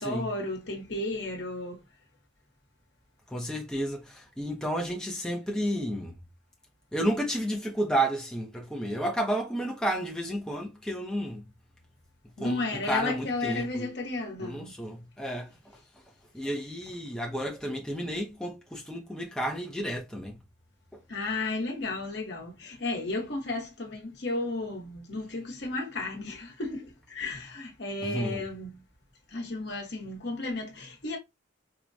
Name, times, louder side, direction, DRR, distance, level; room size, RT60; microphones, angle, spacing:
voice 1, 0.0-1.8 12.4-14.7 21.1-28.8 29.3-31.2, left 2 dB, 60° left, 1.1 m, -33 dB
voice 2, 3.3-6.1 6.9-11.4 12.4-13.9 14.4-15.5 16.3-20.4 28.0-28.4, right 1 dB, 5° left, 0.6 m, -31 dB
4.5 x 2.2 x 2.6 m
head